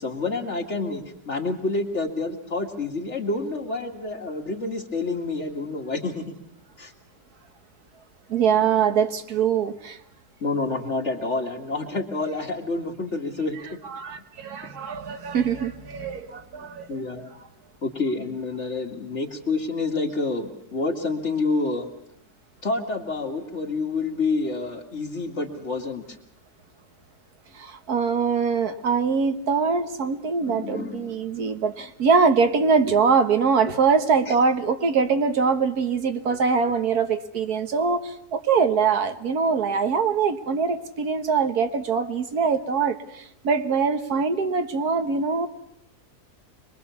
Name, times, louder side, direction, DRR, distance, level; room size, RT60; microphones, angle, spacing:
voice 1, 0.0-6.4 6.8-6.9 8.6-8.7 10.4-13.6 14.6-14.7 16.9-17.3 17.8-21.9 22.6-26.0 30.4-31.3 34.3-34.4, left 3 dB, 45° left, 3 dB, 2.4 m, -28 dB
voice 2, 8.3-10.0 13.8-17.0 27.5-45.5, right 5 dB, 70° right, 8 dB, 1.7 m, -23 dB
25.5 x 21.5 x 7.1 m, 0.77 s
omnidirectional pair, 1.7 m